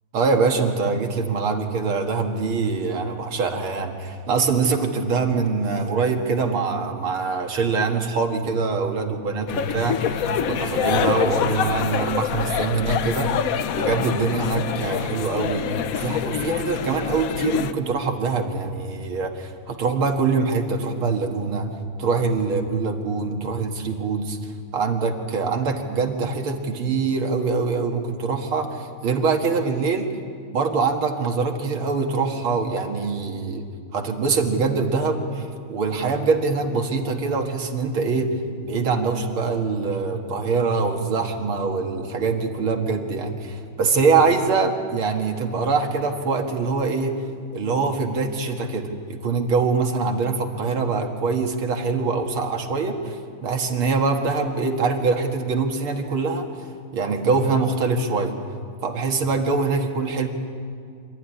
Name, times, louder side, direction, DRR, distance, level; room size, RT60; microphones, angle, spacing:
voice 1, 0.1-13.3 13.7-15.7 16.0-21.7 22.0-30.1 30.5-33.7 33.9-38.4 38.6-47.1 47.5-56.5 56.9-58.4 58.8-60.3, right 4 dB, 70° right, 3 dB, 2.4 m, -24 dB
sound 1, 9.5-17.7, left 9 dB, 80° left, 0.7 m, -25 dB
25.5 x 13.5 x 9.8 m, 2.2 s
omnidirectional pair, 2.4 m